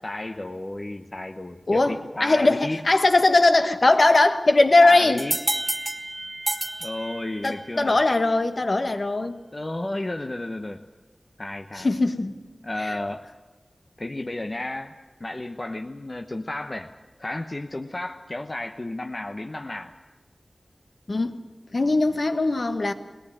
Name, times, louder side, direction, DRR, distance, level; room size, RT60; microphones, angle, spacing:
voice 1, 0.0-2.8 4.8-5.4 6.8-8.0 9.5-10.8 11.4-11.9 12.6-13.2 14.0-14.9 15.2-16.9 17.2-19.9, left 2 dB, 35° left, 5 dB, 0.9 m, -32 dB
voice 2, 1.7-5.2 7.4-9.4 11.8-12.3 12.8-12.9 21.1-21.4 21.7-22.9, left 2 dB, 55° left, 7 dB, 1.4 m, -20 dB
sound 1, 5.2-7.7, right 1 dB, 25° right, 1.4 m, -30 dB
20.5 x 18.0 x 9.0 m, 1.2 s
wide cardioid pair, 80°, 0 cm